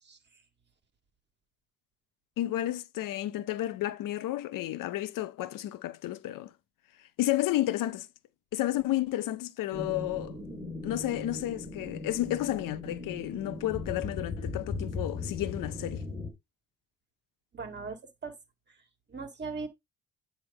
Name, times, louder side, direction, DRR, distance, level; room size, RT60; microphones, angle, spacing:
voice 1, 2.4-6.5 7.2-8.1 8.5-10.3 10.8-16.0, left 14 dB, 85° left, 0.7 m, -31 dB
sound 1, 9.7-16.3, left 3 dB, 15° left, 2.9 m, -38 dB
voice 2, 17.5-18.4 18.7-18.8 19.1-19.7, right 4 dB, 35° right, 1.9 m, -39 dB
8.8 x 3.0 x 5.3 m
cardioid pair, 110°, 32 cm